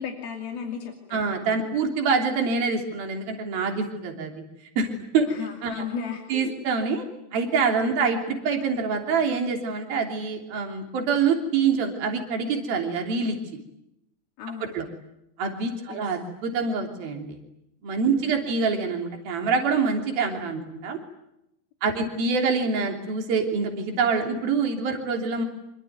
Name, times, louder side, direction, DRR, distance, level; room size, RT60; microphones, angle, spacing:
voice 1, 0.0-1.2 5.3-6.5 8.0-8.2 14.4-14.8 15.9-16.1 18.2-18.5, left 6 dB, 85° left, 2 dB, 4.7 m, -35 dB
voice 2, 1.1-4.3 4.8-5.3 5.6-5.8 6.3-7.1 7.3-13.4 14.7-14.9 15.4-17.4 17.8-21.0 21.8-25.5, right 5 dB, 80° right, 3 dB, 5.1 m, -25 dB
26.5 x 23.0 x 9.4 m, 0.82 s
omnidirectional pair, 4.2 m